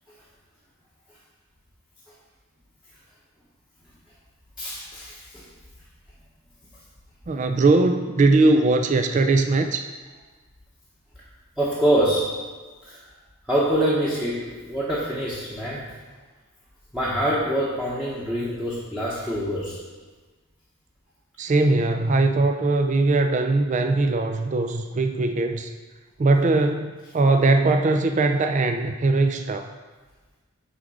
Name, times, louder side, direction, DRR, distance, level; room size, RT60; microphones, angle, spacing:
voice 1, 4.6-5.5 11.6-12.3 12.8-13.0 13.5-15.8 16.9-19.8, right 1 dB, 5° right, -8 dB, 1.0 m, -25 dB
voice 2, 7.3-9.9 21.4-25.7 26.2-29.7, right 3 dB, 35° right, 7 dB, 0.3 m, -20 dB
9.6 x 3.6 x 4.9 m, 1.3 s
head